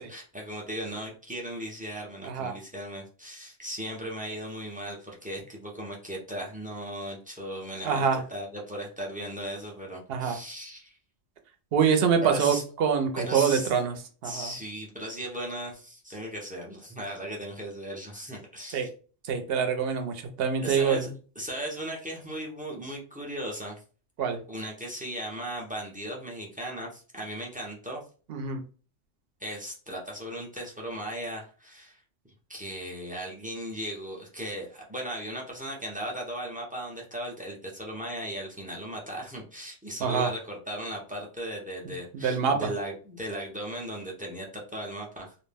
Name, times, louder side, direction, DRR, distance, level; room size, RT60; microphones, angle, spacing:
voice 1, 0.0-11.0 12.2-12.6 13.1-13.7 14.2-18.9 20.6-21.1 21.4-23.8 24.5-28.0 29.4-32.0 32.5-45.3, equal, 15° right, -1 dB, 0.3 m, -37 dB
voice 2, 2.2-2.5 7.8-8.2 10.1-10.4 11.7-13.9 14.2-14.5 18.7-18.9 19.3-21.1 24.2-24.4 28.3-28.6 40.0-40.3 42.1-42.7, right 6 dB, 60° right, 6 dB, 0.7 m, -25 dB
2.5 x 2.1 x 3.3 m, 0.38 s
omnidirectional pair, 1.3 m